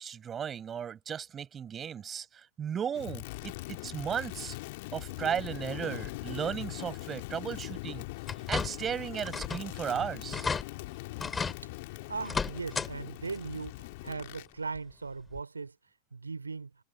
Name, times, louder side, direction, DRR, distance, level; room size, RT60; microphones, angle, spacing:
voice 1, 0.0-2.3 2.6-4.5 4.9-8.0 8.5-10.5, right 8 dB, 25° right, 6.4 m, -35 dB
Crackle, 2.9-14.5, left 22 dB, 50° left, 2.9 m, -41 dB
sound 1, 8.3-8.9 9.3-9.7 10.0-10.1 10.3-10.6 11.2-11.6 12.2-12.9 13.3-13.4 14.8-14.9 15.4-15.5, left 5 dB, 15° left, 7.3 m, -33 dB
voice 2, 12.1-15.7 16.1-16.7, right 4 dB, 75° right, 3.5 m, -38 dB
figure-of-eight pair, 90°, 0 cm